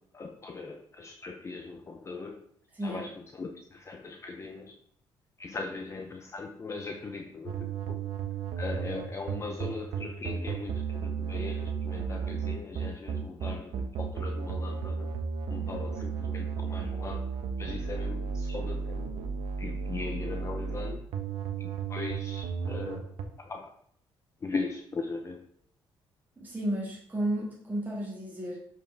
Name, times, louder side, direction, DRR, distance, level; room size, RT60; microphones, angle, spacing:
voice 1, 0.0-2.4 2.8-4.7 5.4-8.0 8.5-15.1 15.5-17.3 17.6-19.1 19.6-21.1 21.6-23.1 23.4-23.7 24.4-25.4, left 4 dB, 30° left, 4 dB, 0.6 m, -39 dB
voice 2, 2.7-3.1 26.4-28.6, right 1 dB, 20° right, -4 dB, 1.8 m, -33 dB
sound 1, 7.5-23.2, right 6 dB, 75° right, 0.9 m, -34 dB
7.3 x 4.6 x 3.3 m, 0.65 s
cardioid pair, 95°, 10 cm